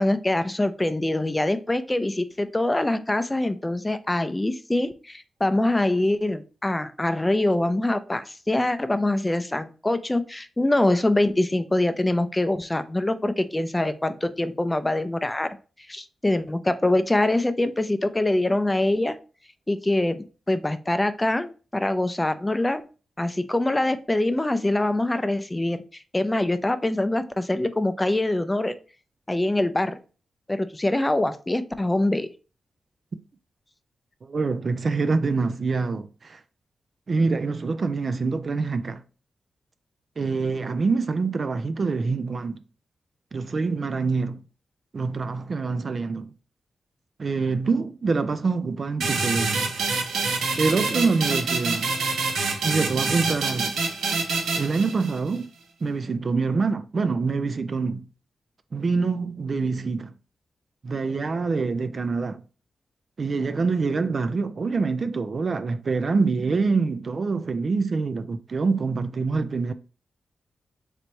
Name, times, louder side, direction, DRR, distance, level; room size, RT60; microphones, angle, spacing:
voice 1, 0.0-15.6 15.9-19.2 19.7-22.9 23.2-25.8 26.1-28.7 29.3-30.0 30.5-32.3, left 1 dB, 20° left, 0.4 m, -24 dB
voice 2, 34.2-36.4 37.1-39.0 40.2-42.6 43.3-44.4 44.9-46.3 47.2-49.7 50.6-51.9 52.6-53.7 54.6-55.5 55.8-58.1 58.7-60.1 60.8-62.4 63.2-69.7, right 4 dB, 55° right, 0.3 m, -25 dB
sound 1, 49.0-55.4, right 4 dB, 90° right, 0.7 m, -26 dB
3.3 x 3.0 x 3.9 m
cardioid pair, 60°, 0 cm